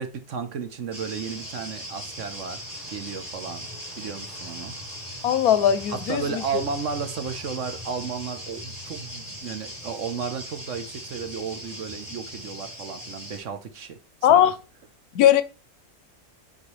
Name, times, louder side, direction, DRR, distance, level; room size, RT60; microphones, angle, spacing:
voice 1, 0.0-2.6 2.9-3.7 4.0-4.7 5.9-14.0 14.3-14.4, right 6 dB, 60° right, 1.2 m, -33 dB
sound 1, 0.9-13.4, equal, 25° right, 3.1 m, -39 dB
voice 2, 5.2-6.4 14.2-14.5 15.1-15.4, left 10 dB, 85° left, 1.1 m, -19 dB
7.9 x 4.9 x 3.2 m
omnidirectional pair, 1.6 m